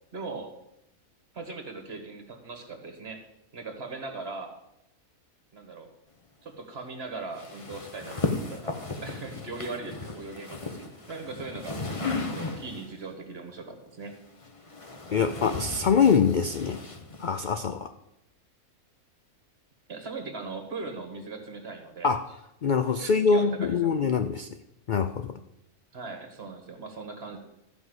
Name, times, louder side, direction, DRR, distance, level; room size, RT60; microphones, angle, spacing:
voice 1, 0.1-0.5 1.3-3.2 3.5-4.6 5.5-5.9 6.4-14.1 19.9-22.1 23.0-23.9 25.9-27.4, right 3 dB, 45° right, 5 dB, 1.8 m, -39 dB
sound 1, 7.3-13.0 14.0-17.6, left 3 dB, 25° left, 0.9 m, -35 dB
voice 2, 15.1-16.8 17.2-17.9 22.0-22.4 22.6-24.5 24.9-25.4, left 6 dB, 65° left, 9 dB, 0.4 m, -24 dB
13.5 x 5.5 x 7.9 m, 0.84 s
omnidirectional pair, 1.5 m